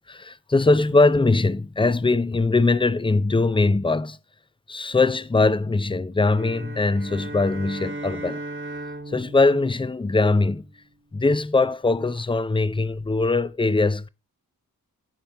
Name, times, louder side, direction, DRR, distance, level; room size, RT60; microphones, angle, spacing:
voice 1, 0.1-4.2 4.7-8.4 9.1-10.6 11.1-14.1, left 3 dB, 15° left, 0.5 m, -21 dB
sound 1, 6.3-10.7, right 2 dB, 35° right, 1.4 m, -37 dB
10.5 x 4.3 x 5.6 m
cardioid pair, 40°, 37 cm